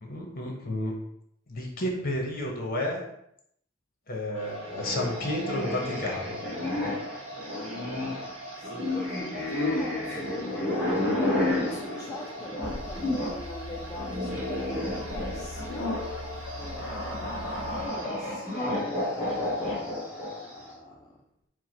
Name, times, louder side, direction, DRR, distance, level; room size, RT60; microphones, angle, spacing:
voice 1, 0.0-1.0 1.5-3.0 4.1-6.4, left 1 dB, 50° left, 0 dB, 1.0 m, -31 dB
sound 1, 4.3-18.1, right 1 dB, 70° right, 1.0 m, -42 dB
sound 2, 4.7-13.4 13.7-20.5, left 1 dB, 5° right, 1.4 m, -31 dB
voice 2, 8.5-21.2, left 2 dB, 20° left, -1 dB, 0.3 m, -41 dB
sound 3, 12.6-17.9, left 2 dB, 75° left, 0.6 m, -41 dB
4.7 x 2.2 x 4.5 m, 0.74 s
head